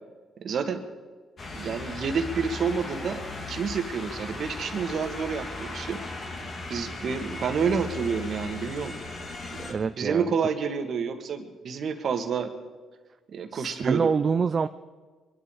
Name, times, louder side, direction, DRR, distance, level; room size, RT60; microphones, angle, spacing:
voice 1, 0.4-0.8 1.5-3.2 3.5-6.0 6.7-8.9 9.2-12.5 13.3-14.1, right 6 dB, 55° right, 6 dB, 1.8 m, -29 dB
sound 1, 1.4-9.7, left 2 dB, 45° left, 3.0 m, -37 dB
voice 2, 9.6-10.3 13.5-14.7, right 5 dB, 40° right, 10 dB, 0.5 m, -26 dB
23.5 x 11.5 x 4.9 m, 1.4 s
cardioid pair, 100°, 0 cm